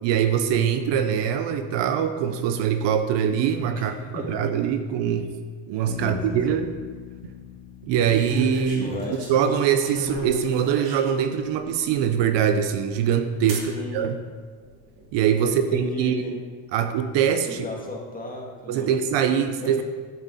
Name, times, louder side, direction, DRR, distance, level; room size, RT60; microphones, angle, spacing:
voice 1, 0.0-5.3 5.7-6.7 7.8-14.2 15.1-16.2 16.7-17.6 18.7-19.8, right 8 dB, 65° right, 9 dB, 0.8 m, -23 dB
voice 2, 3.7-4.3 5.0-5.1 5.9-6.6 8.7-9.2 13.5-14.1 15.3-16.4 17.5-18.9 19.6-19.8, left 1 dB, 15° left, -2 dB, 2.2 m, -35 dB
Bass guitar, 5.9-9.6, left 10 dB, 35° left, 0.6 m, -41 dB
sound 1, 6.3-6.8 8.0-11.3 12.0-12.1 13.5-13.7 14.6-15.1, right 1 dB, 50° right, 2.9 m, -34 dB
11.0 x 8.1 x 4.1 m, 1.5 s
cardioid pair, 115°, 46 cm